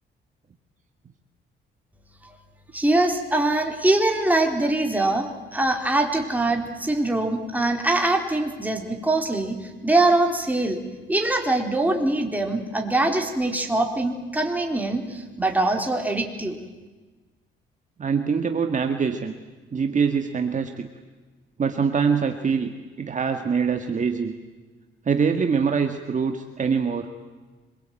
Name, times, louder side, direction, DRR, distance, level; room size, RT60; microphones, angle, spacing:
voice 1, 2.7-10.8 11.1-16.6, right 2 dB, 10° right, 3 dB, 4.2 m, -23 dB
voice 2, 18.0-19.3 19.7-20.9 21.6-22.7 23.0-24.4 25.1-27.1, right 6 dB, 40° right, 6 dB, 1.8 m, -24 dB
26.0 x 22.5 x 9.1 m, 1.3 s
cardioid pair, 90°, 20 cm